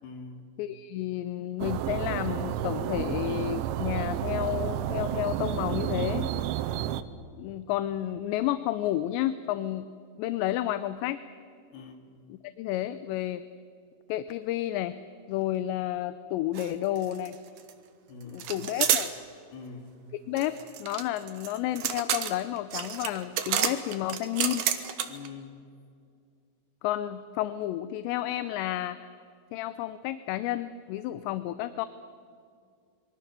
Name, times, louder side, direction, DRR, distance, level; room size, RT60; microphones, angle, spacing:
voice 1, 0.0-0.5 11.7-12.2 18.1-18.6 19.5-20.0 25.0-25.6, left 4 dB, 65° left, 4 dB, 4.1 m, -44 dB
voice 2, 0.6-6.4 7.4-9.9 10.2-11.2 12.6-13.4 14.1-15.0 15.3-17.4 18.3-19.1 20.3-24.6 26.8-29.0 29.5-31.9, left 13 dB, 80° left, 12 dB, 2.8 m, -31 dB
sound 1, 1.6-7.0, right 12 dB, 85° right, 3.1 m, -31 dB
sound 2, 16.6-16.7 17.0-17.7 18.4-19.1 20.4-25.3, right 9 dB, 65° right, 2.1 m, -29 dB
26.5 x 23.0 x 6.9 m, 2.3 s
omnidirectional pair, 5.2 m